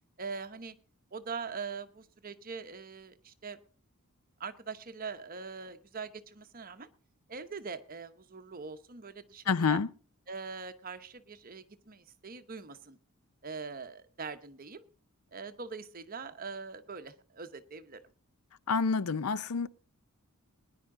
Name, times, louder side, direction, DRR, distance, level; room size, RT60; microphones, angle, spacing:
voice 1, 0.2-0.7 1.1-3.6 4.4-6.9 7.3-9.8 10.3-13.0 13.4-14.8 15.3-18.0, right 5 dB, 40° right, 0.9 m, -42 dB
voice 2, 9.5-9.9 18.7-19.7, left 5 dB, 80° left, 0.5 m, -28 dB
20.0 x 10.5 x 3.7 m
head